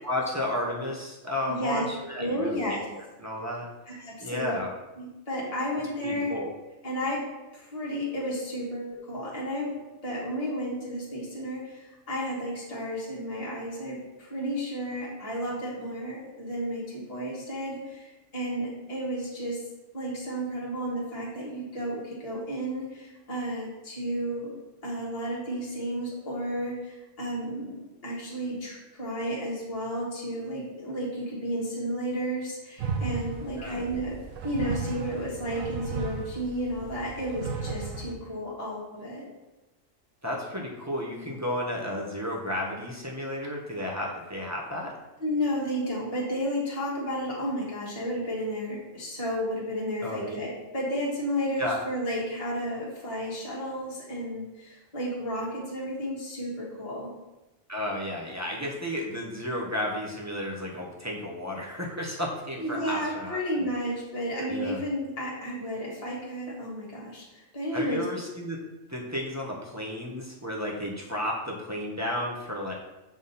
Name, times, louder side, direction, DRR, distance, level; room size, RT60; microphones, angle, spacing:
voice 1, 0.0-2.6 3.2-3.7 4.2-4.7 6.0-6.5 33.5-33.8 40.2-44.9 50.0-50.3 51.6-51.9 57.7-63.7 64.4-64.8 67.7-68.6 68.9-72.7, left 1 dB, 15° right, -3 dB, 0.7 m, -32 dB
voice 2, 1.5-1.8 2.2-2.8 3.9-4.5 5.0-6.3 6.8-7.2 7.5-19.6 19.9-24.5 24.8-34.2 34.4-39.2 45.2-57.1 62.5-68.0, equal, 30° left, -6 dB, 1.5 m, -32 dB
sound 1, 32.8-38.1, right 5 dB, 80° right, 1.0 m, -35 dB
7.1 x 3.6 x 4.1 m, 1.0 s
omnidirectional pair, 1.3 m